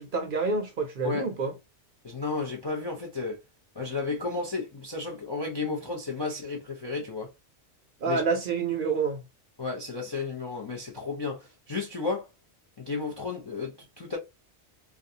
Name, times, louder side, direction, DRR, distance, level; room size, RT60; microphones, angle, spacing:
voice 1, 0.0-1.5 8.0-9.2, right 4 dB, 60° right, 0.6 m, -28 dB
voice 2, 2.0-3.4 3.7-7.3 8.0-8.2 9.6-12.3 12.8-14.2, left 4 dB, 40° left, 0.3 m, -33 dB
2.4 x 2.3 x 2.6 m
omnidirectional pair, 1.2 m